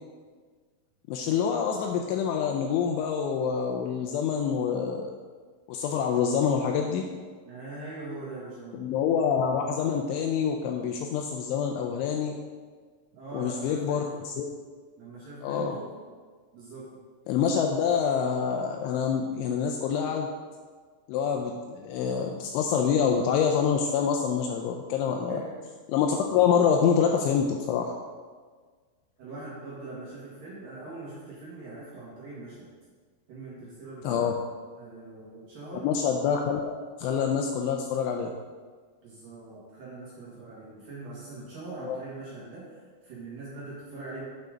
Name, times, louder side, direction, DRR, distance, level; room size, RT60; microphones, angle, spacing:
voice 1, 1.1-5.1 5.7-7.1 8.7-12.4 13.3-14.5 15.4-15.8 17.3-20.3 21.1-25.4 25.9-28.0 34.0-34.3 35.8-36.7 37.0-38.3 41.8-42.0, left 7 dB, 85° left, 2 dB, 2.7 m, -26 dB
voice 2, 7.5-8.9 13.1-14.2 15.0-15.9 16.5-16.9 25.3-25.6 29.2-32.7 33.3-34.3 34.8-35.9 39.0-44.2, right 2 dB, 60° right, -7 dB, 2.7 m, -42 dB
7.9 x 5.6 x 5.1 m, 1.5 s
omnidirectional pair, 5.8 m